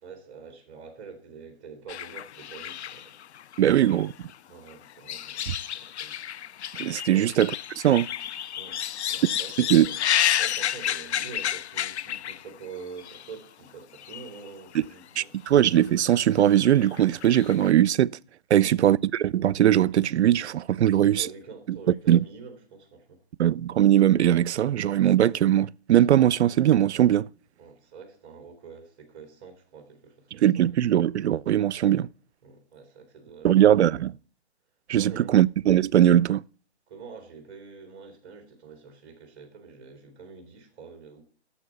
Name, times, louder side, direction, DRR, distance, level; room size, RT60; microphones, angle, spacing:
voice 1, 0.0-3.1 3.6-4.1 4.5-6.1 7.1-7.3 8.5-8.8 9.1-10.0 10.4-15.4 18.5-18.9 20.9-23.2 27.6-30.7 32.4-34.0 34.9-35.3 36.9-41.2, right 5 dB, 25° right, 2.3 m, -45 dB
sound 1, 1.9-4.3 4.7-12.6 13.0-13.3 14.0-14.5 14.7-14.8 15.7-16.1 16.4-17.7, left 10 dB, 85° left, 0.5 m, -31 dB
voice 2, 3.6-4.1 5.5-5.6 6.8-7.5 7.8-8.1 9.7-9.9 15.2-18.2 18.5-19.0 19.2-21.3 22.1-22.2 23.4-27.3 30.4-32.1 33.4-34.1 34.9-36.4, right 11 dB, 85° right, 0.5 m, -20 dB
8.6 x 7.1 x 6.9 m
hypercardioid pair, 150°, 32 cm